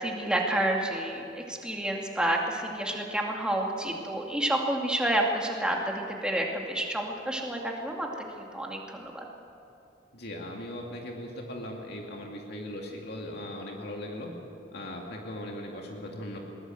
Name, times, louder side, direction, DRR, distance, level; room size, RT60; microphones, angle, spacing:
voice 1, 0.0-8.1 8.4-9.2, right 1 dB, 5° right, 0 dB, 2.3 m, -29 dB
voice 2, 10.1-14.3 14.7-16.4, left 1 dB, 55° left, 0 dB, 2.3 m, -39 dB
22.0 x 19.5 x 7.8 m, 2.8 s
head